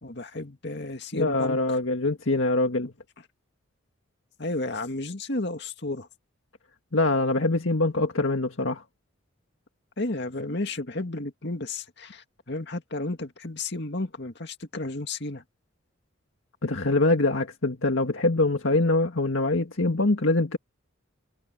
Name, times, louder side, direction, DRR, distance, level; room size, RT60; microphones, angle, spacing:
voice 1, 0.0-1.8 4.4-6.1 10.0-15.4, left 2 dB, 55° left, 2.2 m, -32 dB
voice 2, 1.1-2.9 6.9-8.8 16.6-20.6, left 2 dB, 75° left, 1.8 m, -24 dB
head